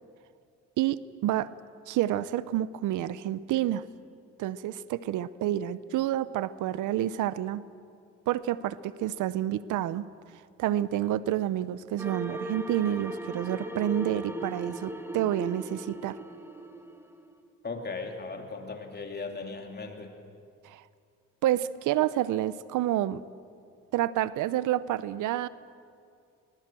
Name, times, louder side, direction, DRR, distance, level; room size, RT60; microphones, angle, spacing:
voice 1, 0.8-1.5 1.9-3.8 4.4-7.6 8.3-10.0 10.6-16.2 20.6-20.8 21.4-23.2 23.9-25.5, right 12 dB, 85° right, 17 dB, 0.7 m, -29 dB
sound 1, 12.0-17.3, right 1 dB, 10° right, 1.6 m, -38 dB
voice 2, 17.6-20.1, left 4 dB, 35° left, 3 dB, 3.1 m, -37 dB
22.5 x 20.0 x 7.6 m, 2.4 s
cardioid pair, 90°, 30 cm